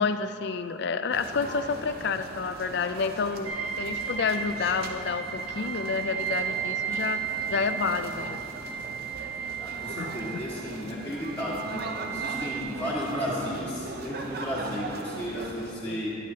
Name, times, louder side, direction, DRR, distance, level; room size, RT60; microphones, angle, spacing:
voice 1, 0.0-3.5 3.8-7.2 7.5-8.4 10.0-10.4 15.9-16.0, left 5 dB, 55° left, 10 dB, 0.4 m, -29 dB
sound 1, 1.1-15.7, right 2 dB, 50° right, 0.6 m, -40 dB
sound 2, 3.4-12.6, right 8 dB, 85° right, 1.5 m, -34 dB
voice 2, 9.6-16.2, equal, 10° left, -10 dB, 1.6 m, -33 dB
11.0 x 10.5 x 2.8 m, 2.9 s
head